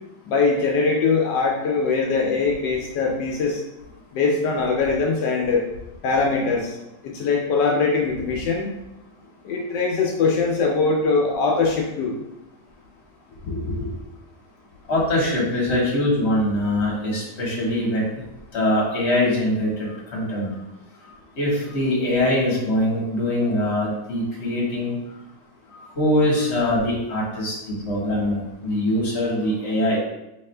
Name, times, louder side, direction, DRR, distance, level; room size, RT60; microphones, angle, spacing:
voice 1, 0.2-3.6 4.1-5.6 6.0-6.8 7.0-8.7 9.4-12.1, left 4 dB, 80° left, 0 dB, 1.3 m, -22 dB
voice 2, 13.4-13.9 14.9-18.2 18.5-20.5 21.4-24.9 25.7-30.0, left 1 dB, 40° left, -4 dB, 1.5 m, -23 dB
4.2 x 3.4 x 3.3 m, 0.91 s
omnidirectional pair, 1.9 m